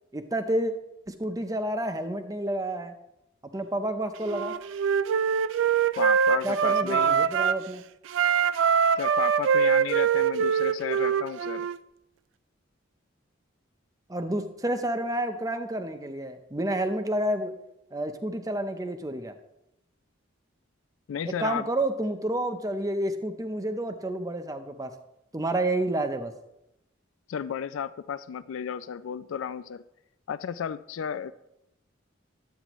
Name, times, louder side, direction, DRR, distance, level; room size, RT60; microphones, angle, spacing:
voice 1, 0.1-0.7 1.1-2.9 3.4-4.5 6.4-7.8 14.1-17.5 17.9-19.3 21.2-24.9 25.3-26.3, right 1 dB, 15° right, 8 dB, 0.6 m, -29 dB
Wind instrument woodwind instrument, 4.2-7.6 8.1-11.8, right 7 dB, 70° right, 0.3 m, -24 dB
voice 2, 6.0-7.2 9.0-11.7 21.1-21.7 27.3-29.8 30.3-31.3, left 8 dB, 85° left, 15 dB, 0.4 m, -33 dB
11.5 x 8.7 x 3.0 m, 0.87 s
head